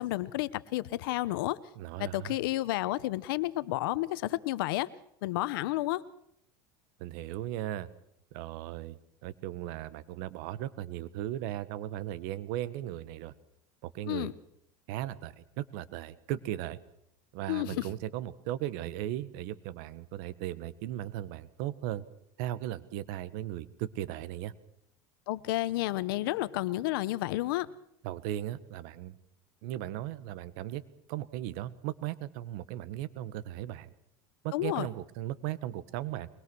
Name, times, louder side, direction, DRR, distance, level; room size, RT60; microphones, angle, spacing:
voice 1, 0.0-1.6 2.0-4.9 5.2-6.0 14.1-14.3 17.5-17.9 25.3-27.7 34.5-34.9, left 17 dB, 80° left, 17 dB, 1.0 m, -31 dB
voice 2, 1.8-2.4 7.0-7.9 8.3-13.3 13.8-14.3 14.9-16.8 17.3-22.1 22.4-24.5 28.0-29.2 29.6-30.8 31.1-33.9 34.4-36.3, right 13 dB, 70° right, 15 dB, 1.4 m, -37 dB
23.0 x 21.0 x 6.3 m, 0.72 s
supercardioid pair, 130°, 12 cm